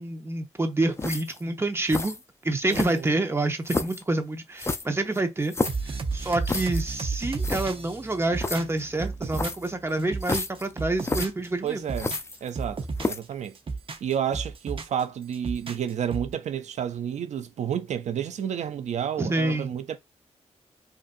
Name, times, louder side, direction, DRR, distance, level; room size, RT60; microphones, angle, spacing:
voice 1, 0.0-5.6 6.1-11.8 19.2-19.7, right 2 dB, 20° right, 0.8 m, -27 dB
sound 1, 1.0-1.4 1.9-2.2 2.7-3.2 3.7-4.0 4.6-5.9 6.4-6.8 7.1-7.2 7.4-7.7 8.4-8.6 9.3-9.7 10.2-10.7 11.0-11.3 11.9-12.6 13.0-13.3, left 3 dB, 20° left, 0.4 m, -30 dB
voice 2, 2.7-3.1 11.6-12.2 12.4-13.5 14.0-20.0, right 9 dB, 85° right, 0.4 m, -30 dB
sound 2, 5.7-9.7 10.0-11.5 11.8-13.2 13.6-15.0 15.3-16.3, right 4 dB, 50° right, 0.8 m, -33 dB
5.3 x 2.5 x 2.5 m
wide cardioid pair, 95°, 12 cm